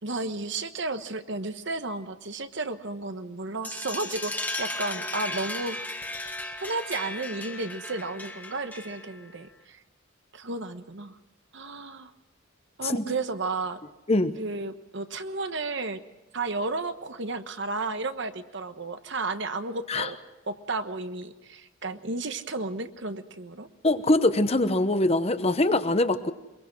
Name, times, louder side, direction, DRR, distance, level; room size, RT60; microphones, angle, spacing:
voice 1, 0.0-5.8 6.6-9.8 10.3-11.2 11.5-12.1 12.8-13.8 14.4-16.0 16.3-20.2 20.4-23.7, right 3 dB, 60° right, 9 dB, 1.2 m, -33 dB
sound 1, 3.6-9.2, left 1 dB, 10° left, 1.5 m, -35 dB
voice 2, 23.8-26.3, left 2 dB, 30° left, 10 dB, 0.9 m, -23 dB
23.0 x 22.5 x 6.1 m, 1.0 s
head